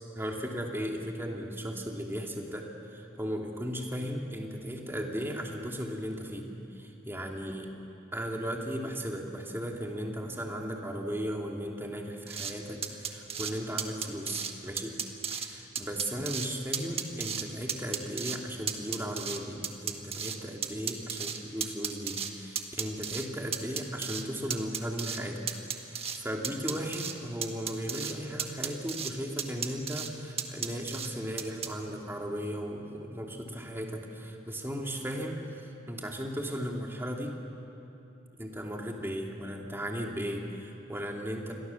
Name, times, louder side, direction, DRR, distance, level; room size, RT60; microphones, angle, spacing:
voice 1, 0.1-6.5 6.7-7.7 8.1-14.9 15.3-25.5 25.8-37.3 38.4-41.5, equal, 10° right, 0 dB, 2.6 m, -36 dB
sound 1, 12.3-12.5 12.8-13.5 13.8-14.5 14.8-15.5 15.8-16.5 16.7-17.4 17.7-18.4 18.7-20.4 20.6-22.3 22.6-23.3 23.5-24.2 24.5-25.2 25.5-26.2 26.4-27.1 27.4-28.1 28.4-29.1 29.4-30.1 30.4-31.1 31.4-31.7, right 7 dB, 30° right, 1.6 m, -34 dB
29.0 x 23.0 x 7.1 m, 2.9 s
head